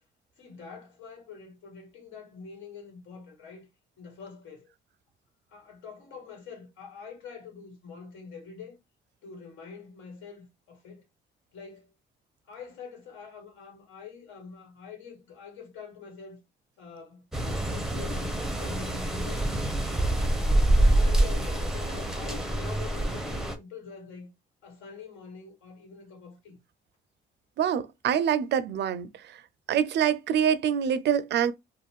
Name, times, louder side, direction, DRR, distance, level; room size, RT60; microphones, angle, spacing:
voice 1, 0.4-3.6 4.0-4.7 5.5-8.8 9.2-11.0 11.5-11.9 12.4-16.4 16.8-19.4 19.9-20.5 20.8-24.3 24.6-26.6, left 5 dB, 75° left, 1.6 m, -45 dB
sound 1, 17.3-23.6, right 1 dB, ahead, 0.6 m, -26 dB
voice 2, 27.6-29.1 29.7-31.5, right 9 dB, 60° right, 0.4 m, -25 dB
2.4 x 2.2 x 3.4 m
cardioid pair, 90°, 20 cm